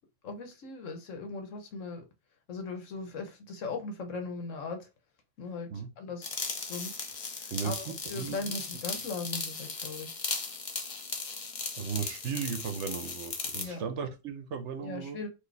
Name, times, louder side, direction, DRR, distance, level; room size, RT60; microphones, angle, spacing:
voice 1, 0.2-2.0 2.5-4.9 5.4-5.7 6.0-6.3 6.7-6.9 7.4-10.1 13.6-13.9 14.8-15.3, left 3 dB, 80° left, 1.3 m, -39 dB
sound 1, 6.2-13.7, left 4 dB, 40° left, 0.5 m, -37 dB
voice 2, 7.5-8.5 11.7-15.2, right 6 dB, 70° right, 0.9 m, -36 dB
4.4 x 2.7 x 3.3 m
omnidirectional pair, 1.3 m